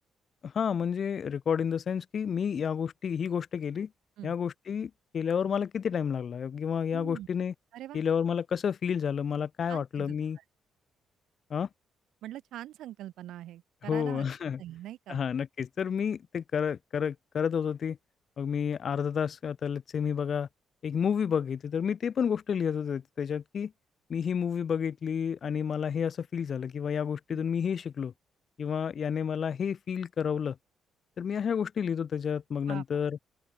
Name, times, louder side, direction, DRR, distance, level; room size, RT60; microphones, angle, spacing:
voice 1, 0.4-3.9 4.2-7.5 7.9-10.4 11.5-11.7 13.9-14.6 15.1-18.0 18.4-20.5 20.8-23.7 24.1-28.1 28.6-30.6 31.2-33.2, left 7 dB, 50° left, 3.1 m, -30 dB
voice 2, 6.9-7.3 7.7-8.0 9.7-10.2 12.2-14.3 14.6-15.2 27.3-27.5 32.7-32.8, right 13 dB, 80° right, 5.4 m, -42 dB
open air
cardioid pair, 90°, 0 cm